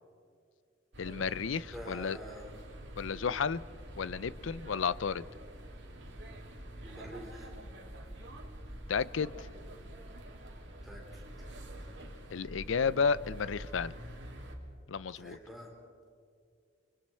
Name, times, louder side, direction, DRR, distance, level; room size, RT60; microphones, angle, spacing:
sound 1, 0.9-14.5, right 1 dB, 65° right, 2.6 m, -47 dB
voice 1, 1.0-2.2 2.9-3.6 4.0-5.3 8.9-9.5 12.3-13.9 14.9-15.4, left 6 dB, 80° left, 17 dB, 0.5 m, -32 dB
voice 2, 1.7-2.5 3.0-3.3 6.8-7.5 10.8-11.2 15.1-15.7, equal, ahead, -2 dB, 3.5 m, -47 dB
29.5 x 24.5 x 4.4 m, 2.2 s
head